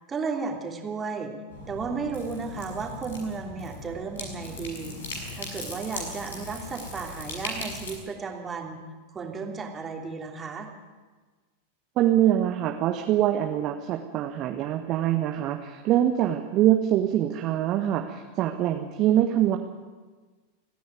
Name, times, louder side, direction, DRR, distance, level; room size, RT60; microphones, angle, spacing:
voice 1, 0.1-1.3 1.7-5.0 5.3-8.8 9.1-10.7, right 5 dB, 20° right, 1 dB, 3.1 m, -34 dB
sound 1, 1.5-8.0, left 2 dB, 65° left, 6.8 m, -38 dB
voice 2, 12.0-19.6, right 12 dB, 35° right, 5 dB, 1.4 m, -24 dB
29.5 x 10.5 x 9.4 m, 1.4 s
figure-of-eight pair, 90°, 0 cm